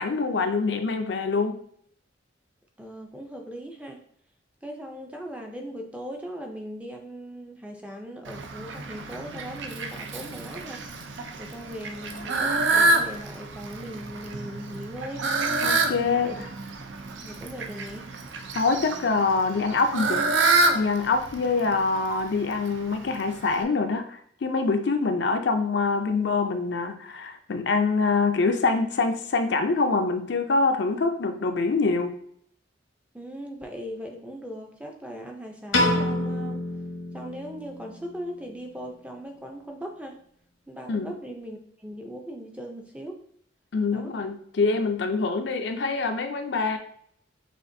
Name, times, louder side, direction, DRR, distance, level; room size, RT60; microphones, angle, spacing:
voice 1, 0.0-1.6 15.6-16.3 18.5-20.3 20.7-32.1 40.9-41.1 43.7-46.8, left 4 dB, 65° left, 6 dB, 0.5 m, -25 dB
voice 2, 2.8-4.0 4.6-10.8 11.4-15.2 16.1-16.4 17.2-18.1 33.1-36.6 37.1-40.2 40.7-43.2 43.9-44.1, equal, 5° right, 1 dB, 0.5 m, -39 dB
Fowl, 8.2-23.6, right 2 dB, 70° right, 0.5 m, -28 dB
Piano, 35.7-38.0, left 1 dB, 85° left, 1.0 m, -27 dB
6.4 x 2.5 x 2.6 m, 0.64 s
head